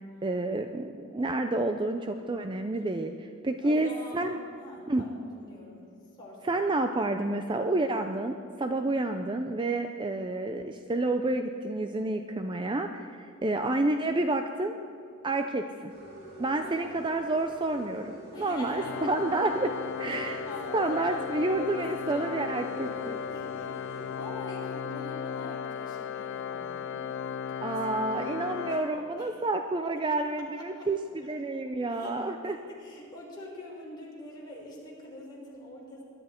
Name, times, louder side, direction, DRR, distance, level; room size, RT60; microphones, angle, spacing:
voice 1, 0.2-4.4 4.9-5.0 6.4-14.8 15.2-15.9 16.4-20.4 20.7-23.2 27.6-32.6, right 2 dB, 20° right, 6 dB, 0.5 m, -29 dB
voice 2, 3.6-5.9 6.2-6.6 16.4-16.9 18.3-19.2 20.1-27.0 27.6-29.3 30.8-30.9 31.9-36.0, left 1 dB, 20° left, -4 dB, 4.1 m, -44 dB
sound 1, 15.9-24.3, right 1 dB, 75° right, 3.5 m, -45 dB
Organ, 18.7-29.6, left 8 dB, 55° left, 0.3 m, -36 dB
21.5 x 11.5 x 4.4 m, 2.4 s
head